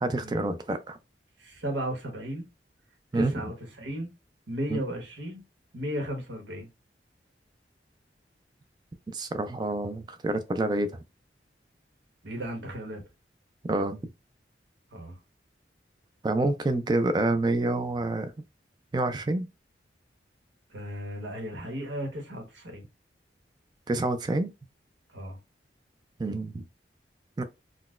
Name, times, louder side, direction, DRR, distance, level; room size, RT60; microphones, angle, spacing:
voice 1, 0.0-1.0 3.1-3.3 4.7-4.8 9.1-10.9 13.7-14.0 16.2-18.3 18.9-19.5 23.9-24.5 26.2-26.6 27.4-27.5, right 2 dB, 25° right, 0.3 m, -27 dB
voice 2, 1.4-2.5 3.1-4.1 4.5-5.4 5.7-6.7 12.2-13.0 14.9-15.2 20.7-22.8 25.1-25.4, equal, 85° right, 1.1 m, -35 dB
3.9 x 2.1 x 2.3 m
head